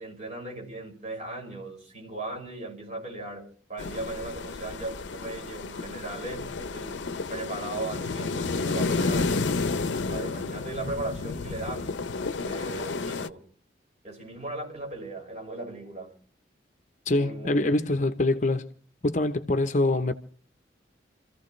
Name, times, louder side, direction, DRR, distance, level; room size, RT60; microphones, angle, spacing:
voice 1, 0.0-7.0 7.3-9.4 10.0-12.0 12.3-13.4 14.0-16.1 17.1-18.0, right 2 dB, 40° right, 6.1 m, -37 dB
sound 1, 3.8-13.3, left 3 dB, 80° left, 0.6 m, -31 dB
voice 2, 17.1-18.7 19.0-20.1, left 2 dB, 40° left, 0.8 m, -24 dB
28.5 x 15.0 x 3.2 m
head